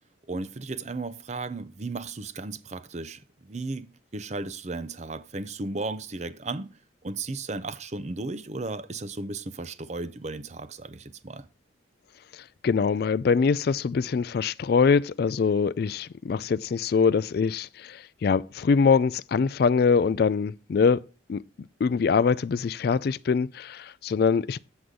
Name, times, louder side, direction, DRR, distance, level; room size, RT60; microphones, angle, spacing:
voice 1, 0.3-6.7 7.0-11.5, right 3 dB, 35° right, 0.6 m, -35 dB
voice 2, 12.6-21.0 21.3-21.4 21.8-24.6, left 5 dB, 50° left, 0.3 m, -23 dB
8.1 x 7.8 x 3.7 m
head